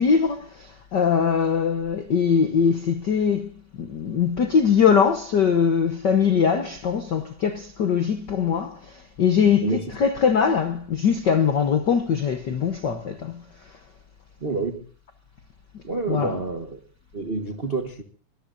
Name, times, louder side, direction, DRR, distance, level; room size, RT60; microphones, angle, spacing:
voice 1, 0.0-13.7 16.1-16.4, left 6 dB, 85° left, 0.9 m, -22 dB
voice 2, 9.6-9.9 14.4-14.8 15.8-16.8 17.1-18.0, right 3 dB, 65° right, 0.5 m, -28 dB
24.5 x 21.5 x 2.6 m
omnidirectional pair, 3.6 m